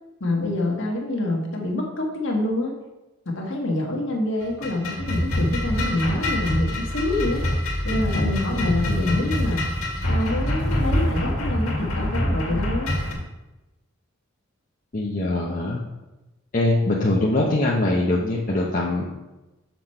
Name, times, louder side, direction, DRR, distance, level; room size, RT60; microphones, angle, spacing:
voice 1, 0.2-2.7 3.2-7.4 7.8-9.6 10.1-12.9 17.0-17.1, left 1 dB, 55° left, 0 dB, 1.5 m, -26 dB
sound 1, 4.4-13.1, left 1 dB, 85° left, 1.9 m, -25 dB
voice 2, 14.9-15.8 16.5-19.1, left 2 dB, 40° left, -4 dB, 0.8 m, -22 dB
7.0 x 6.0 x 4.4 m, 1.0 s
head